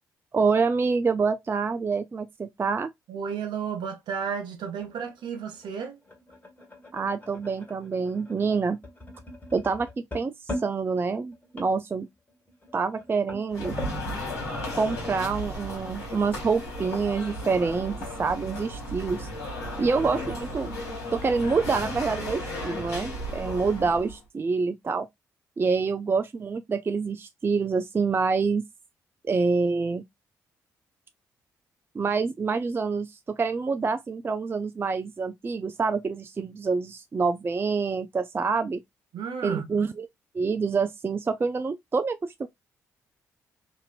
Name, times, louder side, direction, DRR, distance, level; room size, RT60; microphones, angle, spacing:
voice 1, 0.3-2.9 6.9-8.8 9.5-12.1 12.7-13.8 14.8-19.3 19.8-20.7 21.1-25.1 25.6-28.6 29.2-30.0 31.9-38.8 39.4-40.1 40.3-42.5, right 4 dB, 25° right, 0.3 m, -27 dB
voice 2, 3.1-6.0 39.1-39.8, right 7 dB, 65° right, 0.7 m, -33 dB
sound 1, 4.2-14.0, left 1 dB, 20° left, 1.4 m, -42 dB
sound 2, 13.5-24.2, left 1 dB, 85° left, 1.2 m, -35 dB
2.9 x 2.6 x 2.4 m
hypercardioid pair, 40°, 8 cm